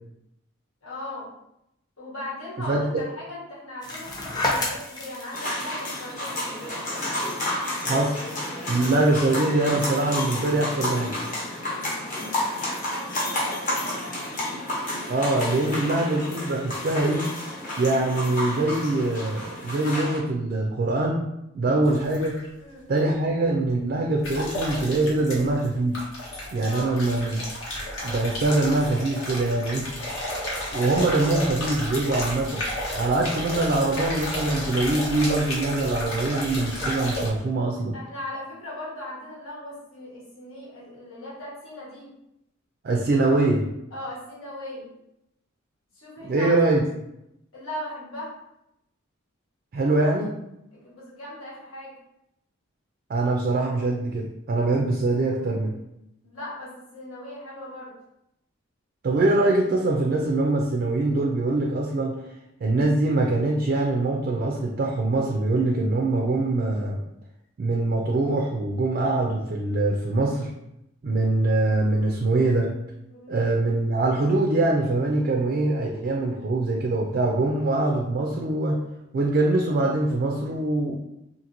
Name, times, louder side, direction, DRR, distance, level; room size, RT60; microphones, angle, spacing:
voice 1, 0.8-1.3 2.0-6.5 12.9-14.2 22.6-22.9 26.6-27.0 37.9-42.1 43.9-44.9 45.9-46.5 47.5-48.3 50.7-51.9 56.2-57.9 73.1-73.5, left 1 dB, 85° left, -6 dB, 1.2 m, -38 dB
voice 2, 2.7-3.0 7.8-8.2 8.7-11.1 15.1-17.3 17.8-21.3 21.5-22.4 22.9-26.0 26.5-27.4 28.0-29.9 30.7-32.6 32.9-37.9 42.8-43.6 46.2-46.8 49.7-50.3 53.1-55.7 59.0-62.2 62.6-67.0 67.6-70.5 71.0-72.7 73.3-78.8 79.1-80.9, right 2 dB, 45° right, 0 dB, 0.3 m, -23 dB
sound 1, 3.8-9.1, left 2 dB, 20° left, 0.4 m, -33 dB
sound 2, 5.3-20.2, left 1 dB, 40° left, 0.8 m, -31 dB
sound 3, 21.8-22.5 24.2-25.7 25.9-37.3, left 1 dB, 65° left, 0.9 m, -32 dB
2.8 x 2.5 x 2.5 m, 0.84 s
head